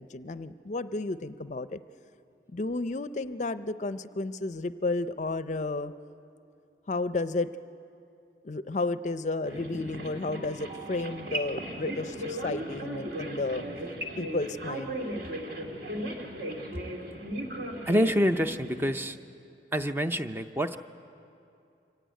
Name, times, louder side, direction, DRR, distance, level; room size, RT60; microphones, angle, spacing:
voice 1, 0.0-1.8 2.5-5.9 6.9-7.5 8.4-13.7 14.2-15.0, left 2 dB, 40° left, 13 dB, 0.5 m, -32 dB
sound 1, 9.4-19.0, right 1 dB, 60° right, 2.2 m, -37 dB
voice 2, 17.9-19.2 19.7-20.9, equal, 15° right, 8 dB, 0.5 m, -27 dB
24.5 x 16.5 x 9.2 m, 2.7 s
head